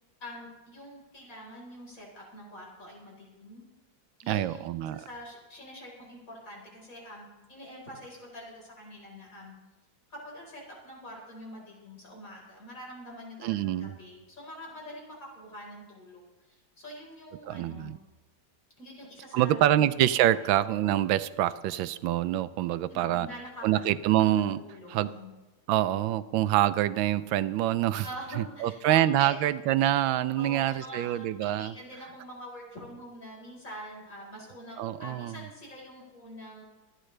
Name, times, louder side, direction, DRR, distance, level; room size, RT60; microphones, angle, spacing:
voice 1, 0.2-3.7 4.2-9.5 10.1-17.9 18.8-19.9 20.3-20.5 22.9-23.7 24.6-25.3 28.0-29.3 30.4-36.6, equal, 45° left, -2 dB, 4.9 m, -45 dB
voice 2, 4.3-5.1 13.4-13.9 17.5-18.0 19.3-23.3 23.6-24.6 24.9-25.1 25.7-28.1 28.4-31.7 34.8-35.4, right 13 dB, 90° right, 14 dB, 1.4 m, -26 dB
25.5 x 10.0 x 3.3 m, 1.2 s
omnidirectional pair, 2.1 m